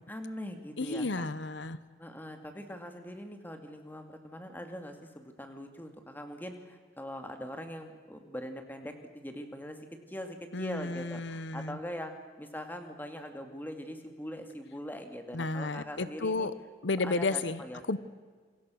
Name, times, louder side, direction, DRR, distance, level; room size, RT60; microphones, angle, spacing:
voice 1, 0.0-1.3 2.0-16.5 17.0-18.0, equal, 10° left, 6 dB, 2.3 m, -42 dB
voice 2, 0.8-1.8 10.5-11.8 15.3-16.5 16.8-17.6 17.9-18.0, left 3 dB, 70° left, 15 dB, 0.9 m, -32 dB
28.0 x 23.5 x 6.4 m, 1.5 s
head